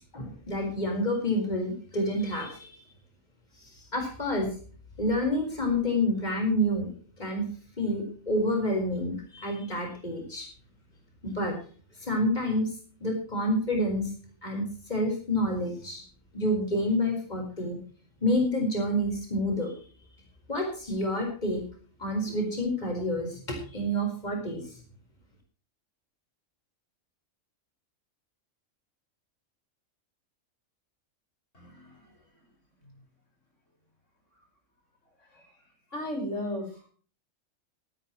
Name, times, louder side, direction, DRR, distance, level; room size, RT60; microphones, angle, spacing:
voice 1, 0.0-2.7 3.9-4.5 5.0-6.9 7.2-7.5 7.8-10.5 11.2-11.5 12.0-12.7 13.0-14.1 14.4-16.0 16.3-17.8 18.2-19.7 20.5-21.6 22.0-24.6, left 1 dB, 35° left, 2 dB, 5.0 m, -28 dB
voice 2, 31.5-32.5 32.8-32.9 34.3-34.5 35.2-35.6 35.9-36.9, left 1 dB, 65° left, 2 dB, 5.8 m, -37 dB
18.0 x 14.5 x 3.1 m, 0.41 s
omnidirectional pair, 1.4 m